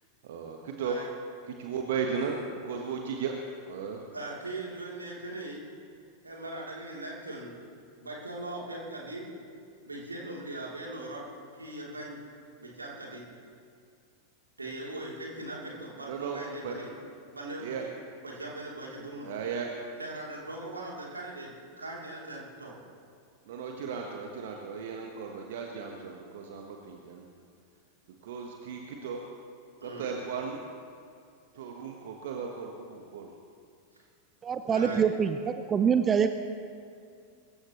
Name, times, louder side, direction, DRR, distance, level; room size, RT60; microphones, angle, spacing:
voice 1, 0.2-1.0 1.4-4.0 16.1-16.8 17.6-17.9 19.2-19.7 23.4-27.2 28.2-29.2 29.8-30.6 31.5-33.3 34.6-35.0, right 6 dB, 55° right, 2 dB, 1.3 m, -36 dB
voice 2, 4.1-5.6 6.2-7.6 8.0-9.3 9.8-11.2 11.5-12.2 12.6-13.2 14.6-16.9 17.3-17.9 18.2-19.3 20.0-22.8 29.8-30.1 34.7-35.0, right 2 dB, 80° right, -3 dB, 3.3 m, -40 dB
voice 3, 34.4-36.3, right 7 dB, 20° right, 9 dB, 0.6 m, -25 dB
24.0 x 14.5 x 3.1 m, 2.3 s
figure-of-eight pair, 90°, 0 cm